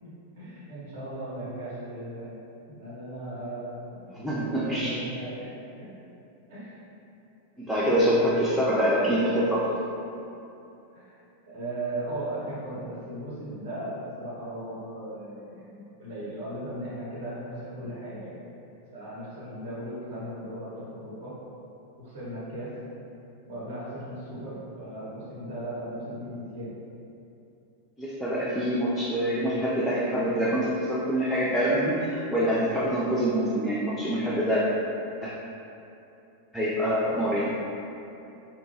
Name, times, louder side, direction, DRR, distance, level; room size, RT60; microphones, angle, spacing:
voice 1, 0.0-2.4 2.7-4.1 4.4-5.5 5.8-5.9 6.5-6.8 10.9-11.2 11.5-18.4 18.9-21.4 22.0-22.7 23.5-26.7, right 1 dB, 55° right, -8 dB, 0.9 m, -37 dB
voice 2, 4.1-5.0 7.6-9.7 28.0-34.6 35.2-35.3 36.5-37.5, equal, ahead, -8 dB, 0.3 m, -25 dB
2.7 x 2.2 x 2.7 m, 2.8 s
figure-of-eight pair, 90°, 0 cm